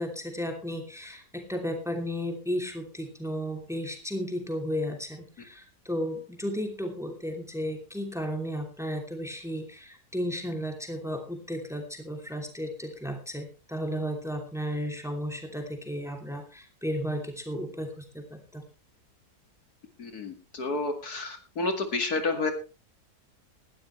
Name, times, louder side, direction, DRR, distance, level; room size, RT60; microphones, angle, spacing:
voice 1, 0.0-18.6, equal, ahead, 3 dB, 2.8 m, -34 dB
voice 2, 20.0-22.5, left 3 dB, 70° left, 5 dB, 2.6 m, -30 dB
18.5 x 12.5 x 3.2 m, 0.31 s
omnidirectional pair, 1.7 m